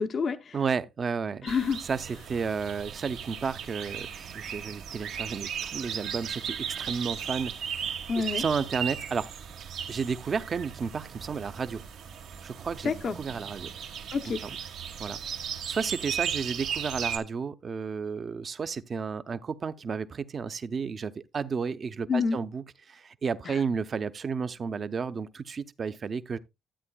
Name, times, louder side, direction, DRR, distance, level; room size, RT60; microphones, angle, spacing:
voice 1, 0.0-0.6 1.4-1.8 8.1-8.4 12.8-13.2 14.1-14.4 22.1-22.4 23.4-23.6, left 5 dB, 50° left, 0.7 m, -28 dB
voice 2, 0.5-1.5 1.8-9.3 9.9-11.8 12.4-12.9 13.2-13.7 14.4-14.6 15.0-15.2 15.7-26.4, right 5 dB, 45° right, 0.6 m, -32 dB
sound 1, 1.5-17.2, right 8 dB, 85° right, 1.4 m, -36 dB
12.5 x 8.3 x 2.2 m
cardioid pair, 90°, 0 cm